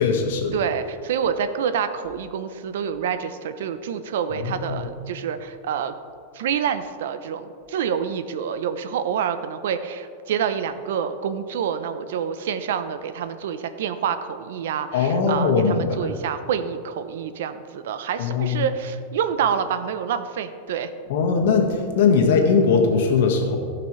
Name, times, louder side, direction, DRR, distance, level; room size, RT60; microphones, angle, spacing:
voice 1, 0.0-0.5 4.3-4.8 14.9-16.1 18.2-18.6 21.1-23.6, left 5 dB, 75° left, 2 dB, 1.6 m, -20 dB
voice 2, 0.5-5.9 6.3-20.9, right 7 dB, 80° right, 11 dB, 0.6 m, -27 dB
17.0 x 5.9 x 3.2 m, 2.4 s
supercardioid pair, 145°, 0 cm